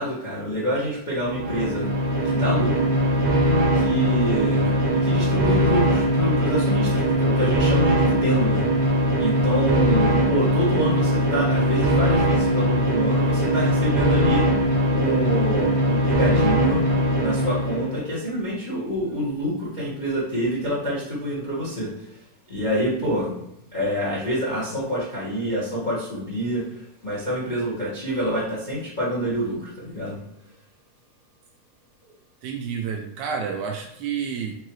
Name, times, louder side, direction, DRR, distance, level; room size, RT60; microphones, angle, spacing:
voice 1, 0.0-1.9 2.2-2.9 3.7-8.8 9.2-14.6 14.9-16.8 17.2-21.9 22.5-23.4 23.7-30.2, equal, 80° left, -7 dB, 0.4 m, -27 dB
sound 1, 1.2-18.0, equal, 60° right, 1.6 m, -21 dB
voice 2, 32.4-34.6, right 6 dB, 80° right, 2 dB, 1.7 m, -29 dB
4.7 x 3.7 x 3.0 m, 0.81 s
omnidirectional pair, 3.6 m